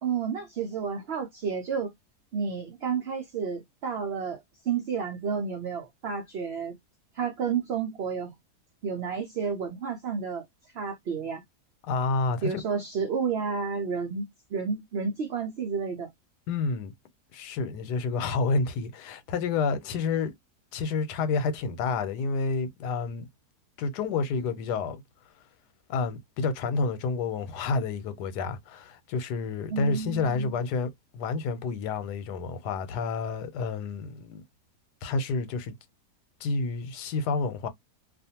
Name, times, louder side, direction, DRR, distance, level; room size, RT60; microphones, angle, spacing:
voice 1, 0.0-1.9 2.3-6.7 7.1-8.3 8.8-10.4 10.7-11.4 12.4-14.2 14.5-16.1 29.7-30.5, right 6 dB, 60° right, 0.7 m, -31 dB
voice 2, 11.8-12.6 16.5-16.9 17.3-20.3 20.7-23.3 23.8-25.0 25.9-34.4 35.0-35.7 36.4-37.7, left 4 dB, 85° left, 1.2 m, -29 dB
2.4 x 2.4 x 2.7 m
omnidirectional pair, 1.7 m